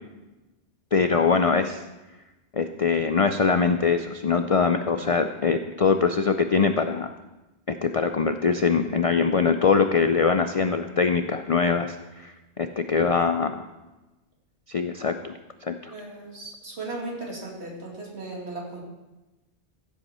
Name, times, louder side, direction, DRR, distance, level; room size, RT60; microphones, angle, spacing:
voice 1, 0.9-1.8 2.5-7.1 7.7-13.6 14.7-15.3 15.6-15.9, left 5 dB, 55° left, 8 dB, 0.4 m, -23 dB
voice 2, 13.0-13.4 15.9-18.8, right 2 dB, 65° right, -2 dB, 2.7 m, -37 dB
15.5 x 8.1 x 4.3 m, 1.1 s
omnidirectional pair, 1.2 m